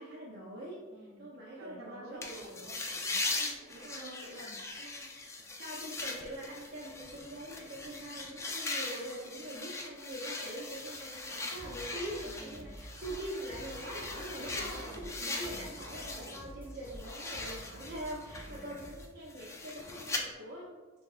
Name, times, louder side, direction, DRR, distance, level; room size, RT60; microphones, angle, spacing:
voice 1, 0.0-0.8 1.2-2.3 3.4-3.5 3.8-4.1 4.8-5.1 5.6-20.8, right 1 dB, 55° right, -5 dB, 0.6 m, -43 dB
voice 2, 0.9-1.3 1.6-4.6 12.2-12.7 14.6-16.4 18.4-18.8, right 1 dB, 85° right, -3 dB, 1.0 m, -50 dB
sound 1, 2.2-16.4 16.8-20.2, left 3 dB, 15° left, 0.4 m, -40 dB
sound 2, 11.6-19.2, equal, 10° right, 1.3 m, -50 dB
6.8 x 2.4 x 2.4 m, 1.3 s
head